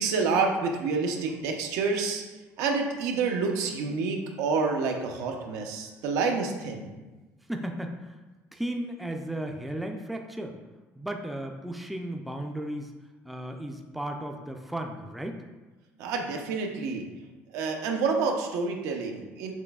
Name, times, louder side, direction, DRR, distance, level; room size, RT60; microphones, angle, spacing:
voice 1, 0.0-2.2 2.6-6.9 16.0-17.1 17.5-19.5, right 4 dB, 80° right, 3 dB, 0.6 m, -28 dB
voice 2, 7.5-8.2 8.5-10.6 11.0-12.9 13.2-15.4, right 1 dB, ahead, 3 dB, 0.3 m, -35 dB
6.1 x 3.4 x 2.3 m, 1.2 s
cardioid pair, 135°, 5 cm